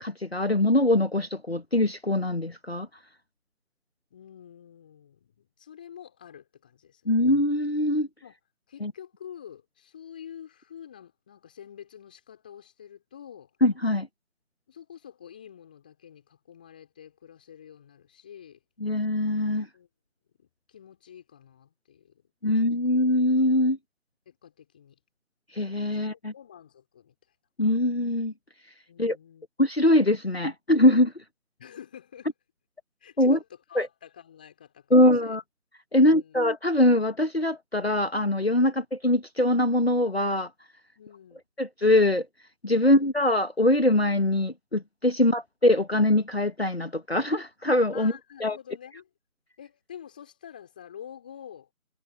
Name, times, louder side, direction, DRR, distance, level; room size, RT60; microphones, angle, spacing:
voice 1, 0.0-2.9 7.1-8.1 8.8-8.9 13.6-14.1 18.8-19.7 22.4-23.8 25.5-26.3 27.6-28.3 29.0-29.2 29.6-31.2 33.2-33.4 33.7-33.9 34.9-35.4 35.9-40.5 41.6-42.3 42.6-48.1 48.4-48.6, left 1 dB, 45° left, 1.4 m, -23 dB
voice 2, 4.1-7.3 8.2-8.4 8.7-13.5 14.7-18.6 19.7-19.9 20.4-22.2 22.5-22.7 24.3-25.0 25.9-26.0 26.3-27.1 28.9-29.5 31.6-32.3 33.0-35.4 35.9-36.4 41.0-41.4 42.8-43.0 47.9-49.1 49.6-51.7, left 9 dB, 5° left, 4.1 m, -47 dB
figure-of-eight pair, 170°, 43 cm